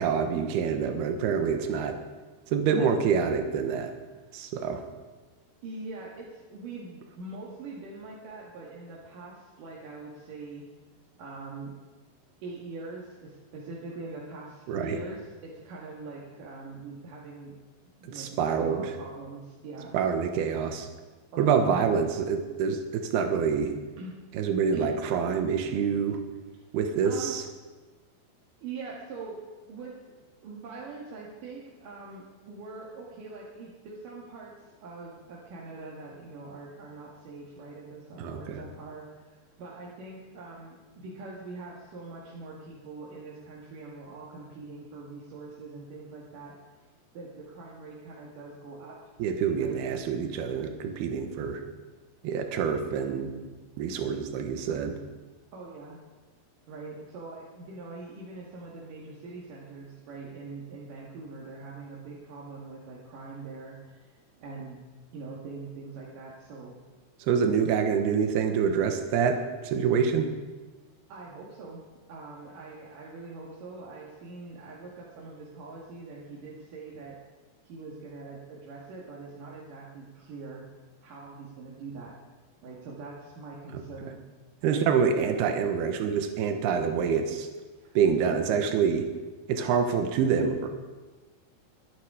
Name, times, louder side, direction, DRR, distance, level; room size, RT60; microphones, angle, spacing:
voice 1, 0.0-2.0 2.5-3.9 4.3-4.8 14.7-15.0 18.1-18.9 19.9-20.9 21.4-23.8 24.3-26.2 26.7-27.4 38.2-38.6 49.2-51.6 52.2-53.3 53.8-55.0 67.2-70.3 83.7-83.8 84.6-87.5 87.9-89.1 89.5-90.7, right 6 dB, 85° right, 5 dB, 3.2 m, -26 dB
voice 2, 5.6-10.6 11.2-11.8 12.4-17.6 18.0-20.0 21.3-21.7 24.0-24.2 24.7-25.0 27.0-27.4 28.6-29.4 29.7-30.1 30.4-46.6 47.1-49.0 49.6-49.8 55.5-56.0 56.7-64.8 65.1-66.8 71.1-71.8 72.1-77.2 77.6-80.6 81.0-82.1 82.6-84.2 84.6-84.9 87.8-88.0, right 3 dB, 60° right, -5 dB, 3.3 m, -43 dB
23.0 x 10.5 x 5.0 m, 1.3 s
omnidirectional pair, 4.5 m